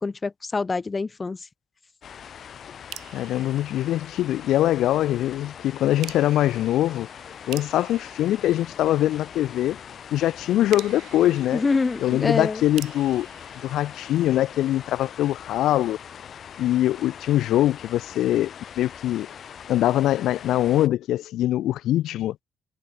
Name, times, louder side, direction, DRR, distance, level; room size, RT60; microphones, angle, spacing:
voice 1, 0.0-1.4 11.5-12.6, left 4 dB, 30° left, 0.6 m, -25 dB
sound 1, 2.0-20.9, left 8 dB, 60° left, 1.8 m, -42 dB
sound 2, 2.9-4.6 6.0-9.3 10.7-14.6, right 15 dB, 85° right, 0.8 m, -45 dB
voice 2, 3.1-7.1 7.5-9.8 10.1-11.6 12.0-13.3 13.6-16.0 16.6-19.3 19.7-22.4, left 13 dB, 85° left, 0.4 m, -23 dB
cardioid pair, 90°, 0 cm